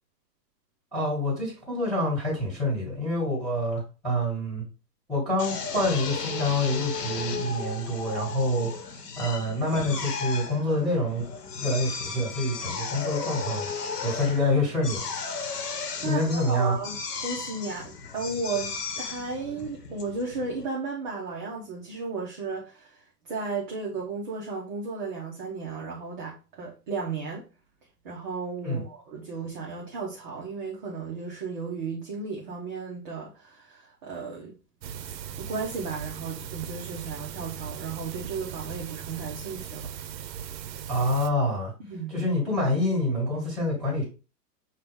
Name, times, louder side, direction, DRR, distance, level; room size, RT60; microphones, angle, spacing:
voice 1, 0.9-4.6 5.1-11.2 11.6-13.7 14.0-16.7 28.6-28.8 40.9-41.7 42.1-44.0, left 1 dB, ahead, 1.9 m, -27 dB
Drill, 5.4-20.7, left 5 dB, 70° left, 1.1 m, -35 dB
voice 2, 16.0-27.4 28.0-34.6 35.0-39.9 41.8-42.1, right 4 dB, 30° right, 0.7 m, -34 dB
sound 1, 34.8-41.3, right 9 dB, 90° right, 0.6 m, -38 dB
5.6 x 2.3 x 3.4 m
hypercardioid pair, 150°, 49 cm